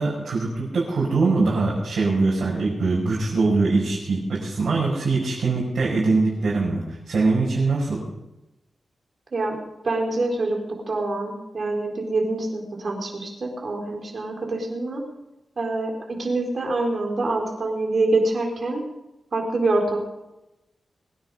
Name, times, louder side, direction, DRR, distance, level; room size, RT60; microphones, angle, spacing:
voice 1, 0.0-8.0, right 3 dB, 70° right, -5 dB, 5.3 m, -22 dB
voice 2, 9.8-10.6 10.9-15.0 15.6-18.8 19.3-20.0, right 2 dB, 50° right, 1 dB, 4.1 m, -25 dB
22.0 x 9.7 x 5.0 m, 0.95 s
wide cardioid pair, 100°, 0 cm